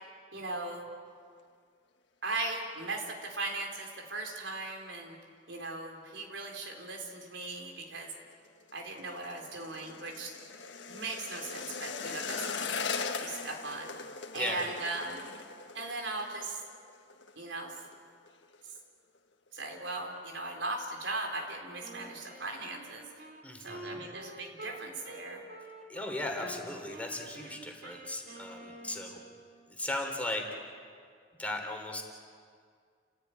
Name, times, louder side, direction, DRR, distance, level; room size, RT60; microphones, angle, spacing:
voice 1, 0.3-0.9 2.2-5.2 5.5-8.1 8.7-10.4 10.9-12.7 13.2-13.9 14.3-15.3 15.7-16.6 17.4-17.7 19.5-23.1 23.6-25.4, right 2 dB, 85° right, 1 dB, 4.2 m, -38 dB
sound 1, 8.3-17.4 17.6-18.0 18.3-18.8 19.2-19.3, left 5 dB, 75° left, 1.6 m, -40 dB
Wind instrument woodwind instrument, 21.8-26.6 26.9-29.5, right 1 dB, 60° right, 3.3 m, -48 dB
voice 2, 23.4-24.0 25.9-29.2 29.7-30.4 31.4-32.0, left 1 dB, 10° left, 2 dB, 3.2 m, -37 dB
29.5 x 16.0 x 9.5 m, 2.1 s
head